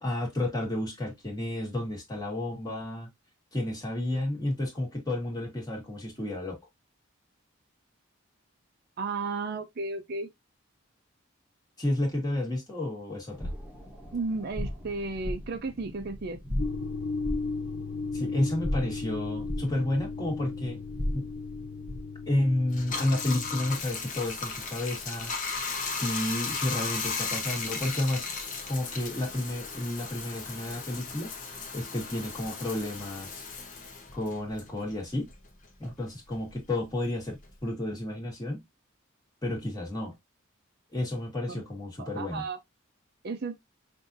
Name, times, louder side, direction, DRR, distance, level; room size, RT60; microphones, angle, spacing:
voice 1, 0.0-3.1 3.5-6.6 11.8-13.5 18.1-20.8 21.1-21.3 22.3-25.3 25.9-28.3 28.7-31.3 31.7-33.5 34.1-35.3 35.8-38.6 39.4-40.2 40.9-42.5, left 1 dB, 20° left, 1.7 m, -31 dB
voice 2, 9.0-10.3 14.1-16.4 41.5-41.6 42.0-42.6 43.2-43.5, right 3 dB, 50° right, 0.5 m, -33 dB
sound 1, 13.3-22.2, left 1 dB, 5° right, 1.0 m, -37 dB
sound 2, 16.6-23.8, left 4 dB, 70° left, 0.4 m, -36 dB
Bathtub (filling or washing), 22.7-35.5 35.8-37.7, left 4 dB, 40° left, 1.0 m, -36 dB
5.8 x 2.7 x 2.6 m
head